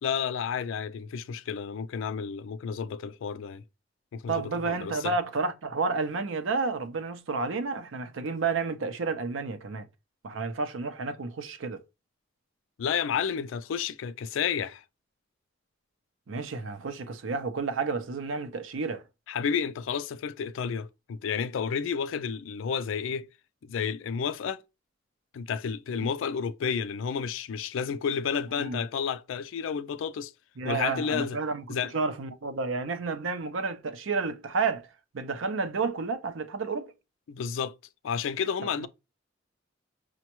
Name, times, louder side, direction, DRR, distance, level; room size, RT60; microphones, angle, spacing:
voice 1, 0.0-3.6 4.1-5.1 12.8-14.8 19.3-23.3 23.6-24.6 25.3-30.3 30.6-31.4 31.7-31.9 37.3-37.7 38.0-38.9, left 7 dB, 80° left, 0.3 m, -31 dB
voice 2, 4.3-9.9 10.2-11.8 16.3-19.0 28.6-28.8 30.6-34.9 35.1-36.9 38.8-38.9, right 4 dB, 85° right, 0.6 m, -31 dB
6.1 x 2.2 x 2.9 m
head